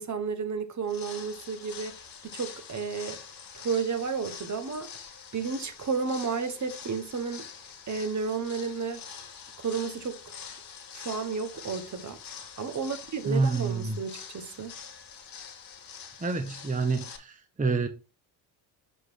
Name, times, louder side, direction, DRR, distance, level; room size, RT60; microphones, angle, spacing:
voice 1, 0.0-2.0 2.3-3.2 3.5-4.9 5.3-7.5 7.9-9.0 9.6-10.4 10.9-12.2 12.6-14.7, right 5 dB, 40° right, 1.3 m, -32 dB
sound 1, 0.8-17.2, left 7 dB, 45° left, 1.8 m, -45 dB
voice 2, 13.3-14.0 16.2-17.9, right 3 dB, 15° right, 0.9 m, -28 dB
6.7 x 4.8 x 3.8 m
supercardioid pair, 75°, 46 cm